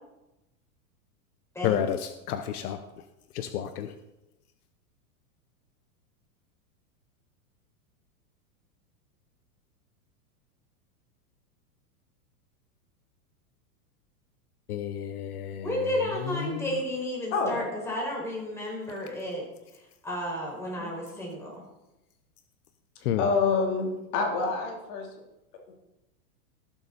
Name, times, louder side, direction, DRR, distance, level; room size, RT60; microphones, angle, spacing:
voice 1, 1.6-3.1 3.3-3.9 14.7-16.8 18.9-19.0 23.0-23.3, left 10 dB, 70° left, 9 dB, 1.0 m, -31 dB
voice 2, 15.6-19.4 20.0-21.5, equal, 5° left, -3 dB, 4.6 m, -32 dB
voice 3, 17.3-17.6 20.8-20.9 21.1-21.3 23.2-25.1 25.7-25.8, left 4 dB, 50° left, 1 dB, 3.1 m, -27 dB
17.5 x 7.2 x 4.2 m, 0.93 s
supercardioid pair, 140°, 46 cm